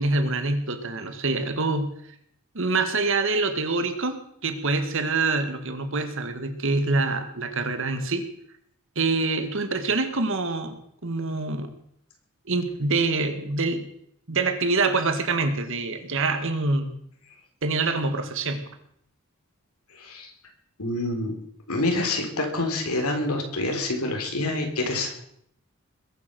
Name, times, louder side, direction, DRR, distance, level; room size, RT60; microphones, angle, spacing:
voice 1, 0.0-1.9 2.5-8.2 9.0-11.7 12.5-13.9 14.3-17.0 17.6-18.6, right 3 dB, 60° right, 8 dB, 1.8 m, -25 dB
voice 2, 19.9-20.3 20.8-21.3 21.7-25.1, left 2 dB, 90° left, 3 dB, 3.8 m, -27 dB
21.5 x 8.4 x 6.9 m, 0.71 s
head